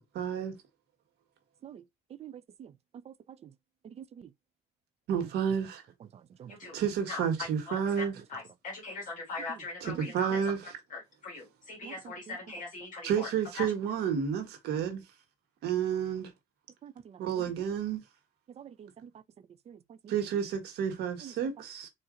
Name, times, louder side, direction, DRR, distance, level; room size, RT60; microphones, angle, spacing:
voice 1, 0.1-0.5 5.1-5.8 6.7-8.1 10.1-10.6 13.0-15.0 15.6-16.3 17.2-18.0 20.1-21.9, right 8 dB, 75° right, 1.5 m, -30 dB
voice 2, 4.0-4.3 6.4-6.6 10.0-10.1 11.8-11.9 16.8-17.2 18.6-19.1 19.7-19.8 21.2-21.3, right 9 dB, 40° right, 0.4 m, -46 dB
voice 3, 6.5-6.8 7.1-7.2 7.7-10.4 10.9-13.7, left 3 dB, 50° left, 1.7 m, -41 dB
4.3 x 2.6 x 3.8 m
cardioid pair, 110°, 17 cm